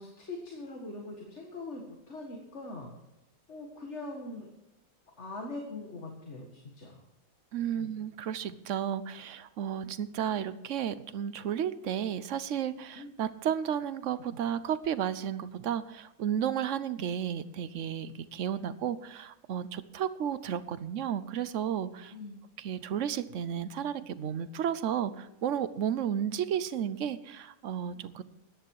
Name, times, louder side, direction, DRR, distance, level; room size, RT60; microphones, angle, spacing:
voice 1, 0.0-3.0 3.5-4.5 5.2-7.0 7.7-7.9 12.9-13.1 22.1-22.4, left 2 dB, 55° left, 0 dB, 2.1 m, -42 dB
voice 2, 7.5-22.1 22.6-28.2, right 9 dB, 65° right, 15 dB, 1.0 m, -33 dB
14.5 x 10.0 x 4.8 m, 0.89 s
omnidirectional pair, 1.5 m